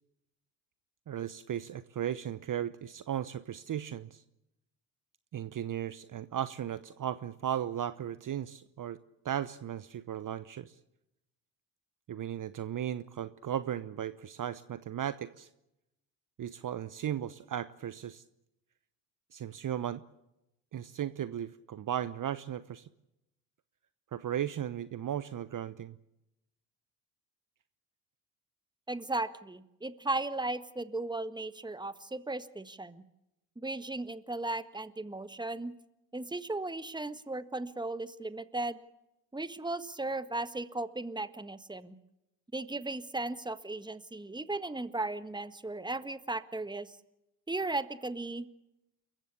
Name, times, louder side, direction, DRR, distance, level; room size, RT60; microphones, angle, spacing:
voice 1, 1.1-4.2 5.3-9.0 9.2-10.8 12.1-15.5 16.4-18.2 19.3-20.0 20.7-22.9 24.1-25.9, right 10 dB, 40° right, 15 dB, 1.0 m, -36 dB
voice 2, 28.9-33.0 33.6-35.7 36.1-38.8 39.3-41.9 42.5-47.0 47.5-48.5, right 2 dB, 10° right, 12 dB, 1.6 m, -36 dB
28.5 x 15.0 x 8.4 m, 0.88 s
hypercardioid pair, 55°, 49 cm